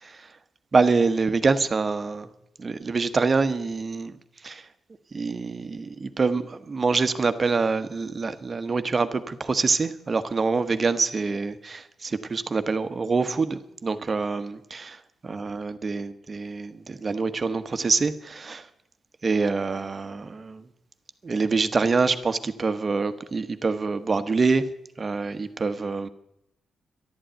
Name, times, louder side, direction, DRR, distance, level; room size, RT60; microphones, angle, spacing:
voice 1, 0.7-2.3 2.6-4.1 4.4-4.6 5.1-15.0 15.2-18.6 19.2-20.6 21.2-24.6 25.0-26.1, right 4 dB, 40° right, 11 dB, 1.2 m, -25 dB
11.5 x 11.5 x 9.2 m, 0.83 s
supercardioid pair, 55°, 0 cm